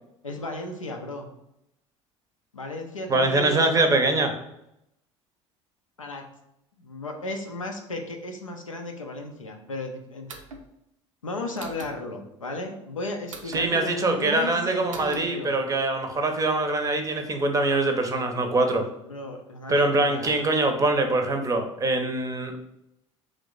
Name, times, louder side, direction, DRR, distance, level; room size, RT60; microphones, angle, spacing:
voice 1, 0.2-1.3 2.5-4.0 6.0-6.3 6.8-10.3 11.2-15.5 19.0-20.5, left 2 dB, 85° left, 3 dB, 0.5 m, -35 dB
voice 2, 3.1-4.3 13.5-18.8 19.7-22.6, right 2 dB, 20° right, 5 dB, 0.6 m, -23 dB
sound 1, 10.3-10.6 11.6-11.9 13.3-13.6 14.9-15.2, right 3 dB, 80° right, 0.5 m, -40 dB
3.1 x 2.6 x 3.8 m, 0.81 s
figure-of-eight pair, 65°, 16 cm